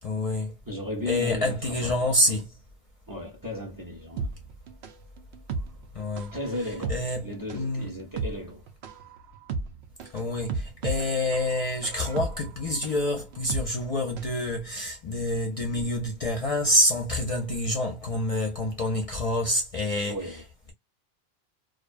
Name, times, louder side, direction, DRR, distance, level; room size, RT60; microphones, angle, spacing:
voice 1, 0.0-0.6 1.1-2.5 5.9-6.3 6.6-7.9 10.1-20.4, left 1 dB, 40° left, 0.6 m, -27 dB
voice 2, 0.7-2.3 3.1-4.3 6.3-6.9 7.2-8.6 20.1-20.4, left 1 dB, 25° right, 0.6 m, -35 dB
sound 1, 4.2-14.4 14.7-14.8, right 4 dB, 80° right, 0.8 m, -35 dB
2.5 x 2.2 x 2.4 m
omnidirectional pair, 1.1 m